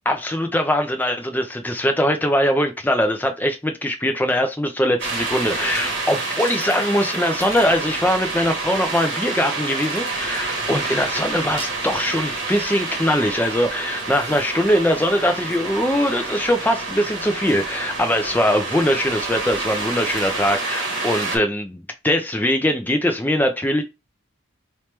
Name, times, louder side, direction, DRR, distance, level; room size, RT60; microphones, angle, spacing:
voice 1, 0.1-23.8, equal, 10° left, 0.4 m, -21 dB
sound 1, 5.0-21.4, right 3 dB, 55° right, 1.3 m, -28 dB
3.1 x 3.0 x 3.2 m
head